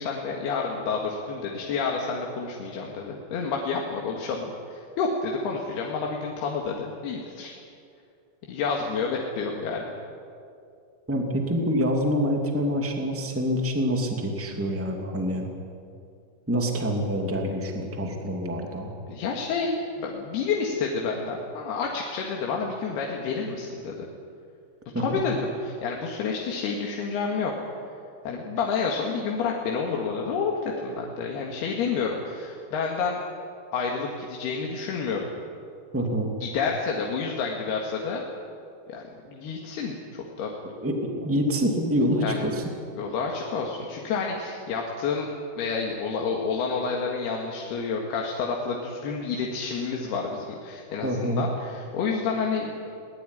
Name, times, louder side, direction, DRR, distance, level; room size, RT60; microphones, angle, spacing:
voice 1, 0.0-7.5 8.5-9.9 19.1-24.1 25.0-27.5 28.3-33.2 33.7-35.3 36.4-38.2 38.9-39.0 39.3-40.5 42.2-42.5 43.0-45.3 45.6-52.9, left 5 dB, 70° left, 0 dB, 3.6 m, -29 dB
voice 2, 11.1-15.5 16.5-18.9 24.9-25.2 35.9-36.3 40.8-42.6 51.0-51.4, equal, 5° right, 1 dB, 1.5 m, -26 dB
21.5 x 19.0 x 10.0 m, 2.5 s
omnidirectional pair, 5.1 m